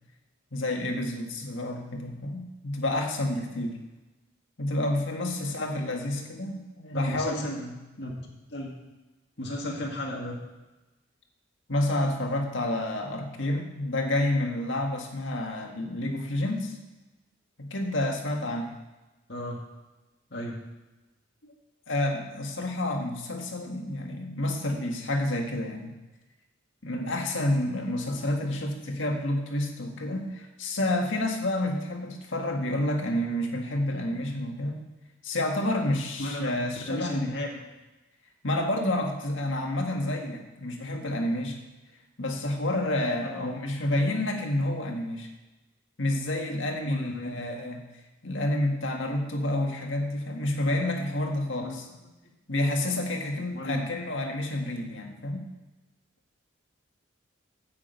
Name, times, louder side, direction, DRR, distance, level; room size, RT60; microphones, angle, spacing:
voice 1, 0.5-3.8 4.6-7.7 11.7-16.7 17.6-18.7 21.4-21.5 21.9-26.0 26.8-34.8 35.2-37.3 38.4-41.6 42.2-45.3 46.0-47.8 48.2-51.8 52.5-55.5, left 1 dB, 70° left, 2 dB, 1.8 m, -29 dB
voice 2, 5.3-6.3 6.9-7.6 8.0-8.1 8.5-8.8 9.4-10.4 19.3-19.6 20.3-20.6 36.2-36.6 36.9-37.6 43.2-43.5 46.8-47.5 51.6-51.8 53.5-53.9, left 1 dB, 55° left, -2 dB, 1.9 m, -35 dB
9.7 x 6.1 x 8.2 m, 1.1 s
head